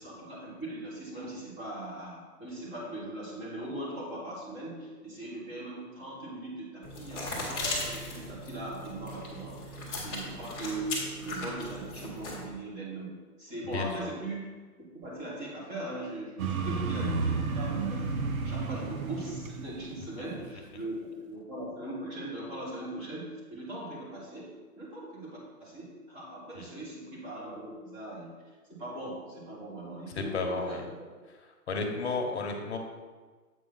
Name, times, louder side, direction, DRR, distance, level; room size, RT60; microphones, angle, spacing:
voice 1, 0.0-10.9 11.2-14.5 14.8-18.1 18.4-24.5 24.8-28.3 28.7-31.1, right 1 dB, 15° right, -5 dB, 1.4 m, -40 dB
sound 1, 6.8-12.5, left 1 dB, 10° left, 0.9 m, -37 dB
voice 2, 13.7-14.1 26.6-26.7 30.2-30.8 31.7-32.8, left 3 dB, 45° left, 3 dB, 1.1 m, -32 dB
sound 2, 16.4-20.5, right 4 dB, 60° right, 0.9 m, -32 dB
7.9 x 5.0 x 3.9 m, 1.4 s
hypercardioid pair, 155°, 47 cm